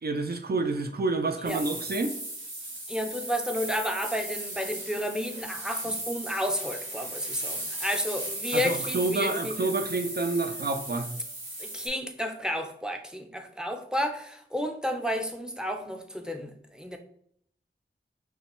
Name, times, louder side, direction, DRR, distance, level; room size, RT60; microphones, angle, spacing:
voice 1, 0.0-2.1 8.5-11.1, right 3 dB, 50° right, 5 dB, 0.5 m, -28 dB
sound 1, 1.4-11.9, right 1 dB, 80° right, 1.6 m, -37 dB
voice 2, 2.9-9.6 11.6-17.0, equal, 5° right, 5 dB, 0.6 m, -31 dB
5.6 x 2.2 x 3.0 m, 0.65 s
wide cardioid pair, 55°, 20 cm